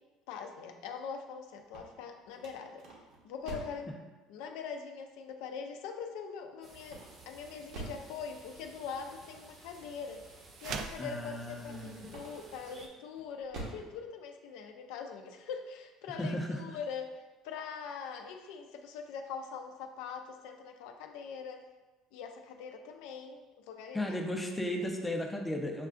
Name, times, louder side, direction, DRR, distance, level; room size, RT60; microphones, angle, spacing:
voice 1, 0.3-2.8 3.2-3.9 4.3-17.2 17.4-21.6 22.1-24.2, left 6 dB, 85° left, 4 dB, 0.4 m, -43 dB
sound 1, 1.6-3.9 6.8-8.1 12.0-12.6 13.1-13.9, right 2 dB, 70° right, 0.9 m, -45 dB
sound 2, 6.6-12.9, right 3 dB, 35° right, 0.7 m, -54 dB
sound 3, 10.6-11.1, right 5 dB, 55° right, 0.3 m, -38 dB
voice 2, 11.0-12.1 16.1-16.6 23.9-25.9, left 1 dB, 10° left, 1 dB, 0.5 m, -35 dB
6.4 x 2.4 x 2.4 m, 1.2 s
cardioid pair, 125°, 0 cm